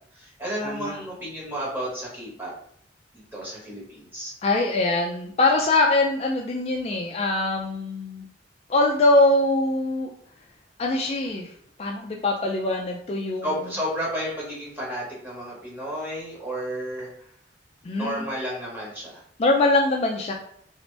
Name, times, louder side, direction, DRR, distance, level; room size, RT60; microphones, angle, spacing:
voice 1, 0.1-2.5 3.1-4.3 13.4-17.1 17.9-19.2, equal, 10° right, -6 dB, 1.3 m, -32 dB
voice 2, 0.6-1.0 4.4-8.3 8.7-10.1 10.8-11.5 11.8-13.5 17.8-18.2 19.4-20.3, left 2 dB, 35° left, 1 dB, 0.3 m, -23 dB
2.9 x 2.7 x 3.3 m, 0.64 s
head